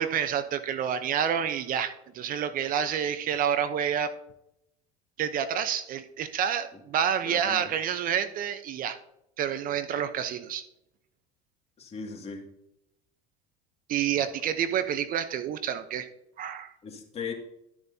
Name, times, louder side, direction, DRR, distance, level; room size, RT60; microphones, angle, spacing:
voice 1, 0.0-4.1 5.2-9.0 9.4-10.6 13.9-16.1 16.4-16.7, right 8 dB, 50° right, 11 dB, 0.8 m, -28 dB
voice 2, 7.2-7.7 11.8-12.5 14.2-14.3 16.8-17.3, left 5 dB, 35° left, 1 dB, 2.3 m, -38 dB
12.5 x 7.1 x 2.8 m, 0.83 s
hypercardioid pair, 85°, 19 cm